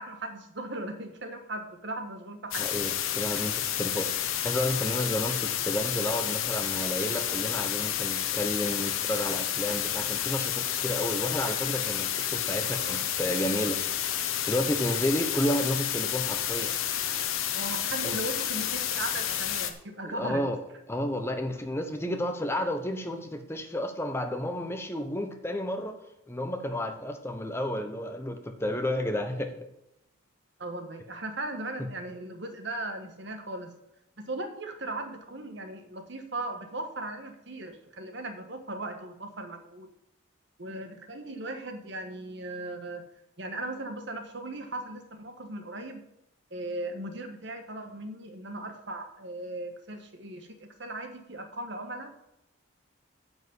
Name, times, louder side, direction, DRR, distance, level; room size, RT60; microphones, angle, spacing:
voice 1, 0.0-2.8 3.4-3.5 12.6-13.0 17.5-20.4 30.6-33.7 34.2-39.9 40.6-43.0 43.4-46.0 46.5-52.1, right 2 dB, 55° right, 6 dB, 1.4 m, -38 dB
sound 1, 2.5-19.7, left 10 dB, 80° left, 0.9 m, -30 dB
voice 2, 2.6-13.8 14.4-16.7 18.0-18.2 20.1-20.6 20.9-26.0 26.3-29.5, left 1 dB, 10° left, 5 dB, 0.9 m, -31 dB
9.7 x 5.2 x 8.1 m, 0.84 s
head